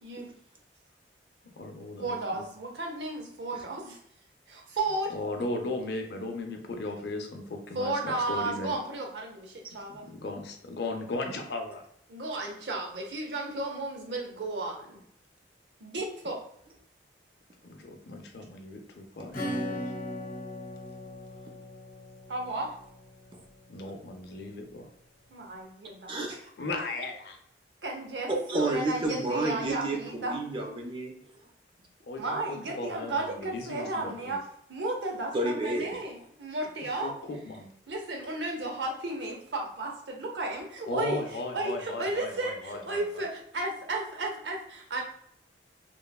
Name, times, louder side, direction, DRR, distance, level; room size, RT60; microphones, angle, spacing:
voice 1, 1.4-2.5 5.1-8.7 10.0-11.8 17.6-19.8 23.7-24.9 26.6-27.4 32.0-34.4 37.0-37.7 40.9-43.2, left 2 dB, 65° left, 4 dB, 0.5 m, -37 dB
voice 2, 2.0-4.0 4.5-5.1 7.7-10.1 12.1-15.0 15.8-16.4 22.3-22.7 25.3-26.2 27.8-30.4 32.2-34.4 34.7-37.1 37.9-41.2 41.5-45.0, right 2 dB, 80° right, 1 dB, 0.7 m, -34 dB
Acoustic guitar / Strum, 19.3-23.6, equal, 50° left, 0.8 m, -38 dB
voice 3, 26.1-26.5 28.3-31.2 33.9-34.0 35.3-36.0, right 2 dB, 30° right, 2 dB, 0.4 m, -30 dB
3.0 x 2.1 x 2.2 m, 0.69 s
head